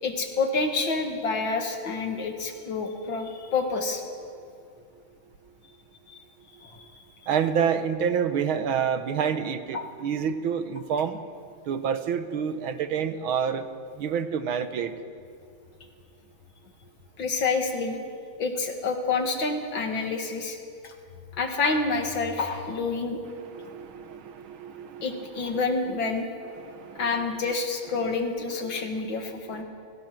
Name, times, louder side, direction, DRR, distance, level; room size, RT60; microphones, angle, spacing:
voice 1, 0.0-4.0 6.1-6.2 6.6-6.8 9.7-9.9 17.2-18.0 18.4-20.6 20.8-20.9 21.3-23.2 25.0-26.3 27.0-29.6, left 4 dB, 65° left, 4 dB, 2.7 m, -28 dB
voice 2, 7.3-11.2 11.7-13.7 14.0-14.9 23.5-25.3 26.6-27.1 29.5-29.6, right 7 dB, 80° right, 10 dB, 1.9 m, -28 dB
29.5 x 18.0 x 6.1 m, 2.4 s
omnidirectional pair, 2.3 m